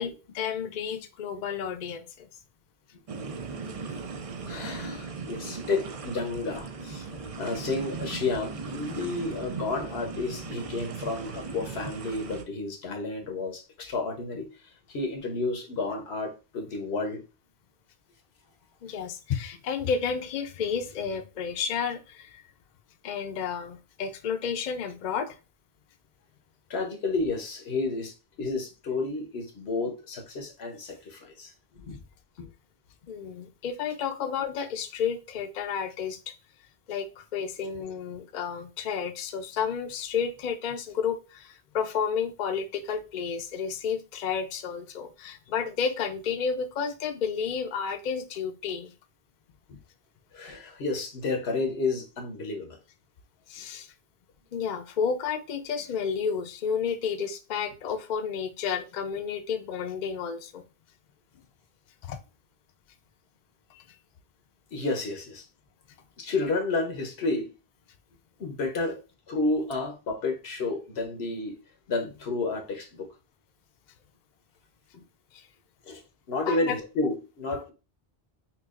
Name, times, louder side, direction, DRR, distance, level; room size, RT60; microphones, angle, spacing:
voice 1, 0.0-2.3 18.8-22.4 23.0-25.4 33.1-36.3 36.9-48.9 53.5-53.9 54.5-60.6 62.0-62.2 63.7-63.8 75.3-75.5 76.5-76.7, left 6 dB, 55° left, 7 dB, 0.6 m, -31 dB
sound 1, 3.1-12.4, right 4 dB, 45° right, 0.5 m, -38 dB
voice 2, 4.5-7.1 7.4-14.5 14.9-17.2 26.7-32.0 32.4-32.5 49.7-49.8 50.3-52.8 64.7-65.5 66.2-67.5 68.4-69.0 69.3-71.5 71.9-73.1 74.9-75.0 75.8-76.0 76.3-77.7, left 3 dB, 90° left, 4 dB, 1.2 m, -31 dB
5.8 x 2.4 x 2.4 m, 0.30 s
omnidirectional pair, 1.0 m